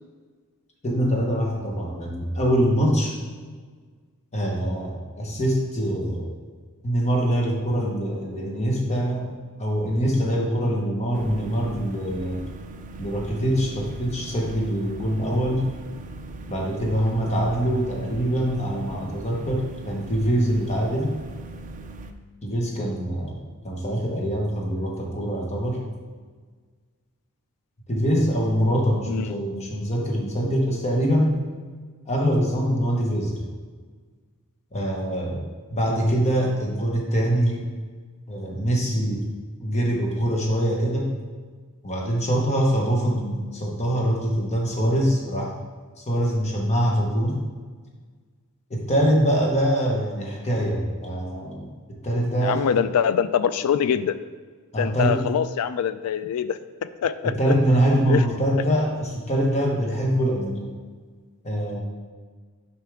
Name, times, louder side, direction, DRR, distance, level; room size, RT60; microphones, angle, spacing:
voice 1, 0.8-3.1 4.3-6.3 6.8-9.3 9.6-12.4 13.0-15.7 16.5-21.1 22.4-25.8 27.9-31.4 32.1-33.4 34.7-37.7 38.3-39.3 39.6-41.1 41.8-45.5 46.0-47.4 48.7-52.7 54.7-55.2 57.2-60.7 61.4-61.8, equal, 30° left, -2 dB, 1.1 m, -24 dB
sound 1, 11.1-22.1, right 2 dB, 35° right, 0.4 m, -40 dB
voice 2, 52.4-54.2 54.8-56.6 57.0-57.3 58.1-58.2, left 8 dB, 80° left, 14 dB, 0.3 m, -23 dB
6.7 x 4.6 x 3.5 m, 1.5 s
head